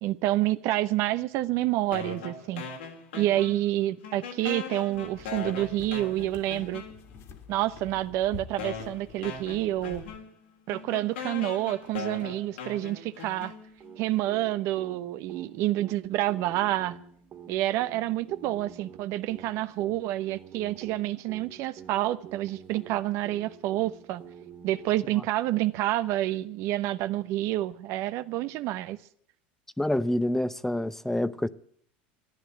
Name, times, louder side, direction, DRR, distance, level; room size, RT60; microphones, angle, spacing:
voice 1, 0.0-2.7 3.1-6.8 7.5-10.0 10.7-13.5 14.0-17.0 17.5-24.2 24.6-29.0, right 15 dB, 55° right, 0.8 m, -28 dB
sound 1, 1.9-3.8 4.0-7.3 8.0-8.1 8.6-14.0, left 5 dB, 80° left, 3.2 m, -40 dB
sound 2, 4.9-10.2, left 5 dB, 55° left, 2.3 m, -47 dB
sound 3, 13.8-25.2, right 8 dB, 40° right, 2.1 m, -48 dB
voice 2, 29.8-31.5, left 1 dB, 5° left, 0.7 m, -27 dB
14.0 x 9.9 x 9.8 m
hypercardioid pair, 90°, 6 cm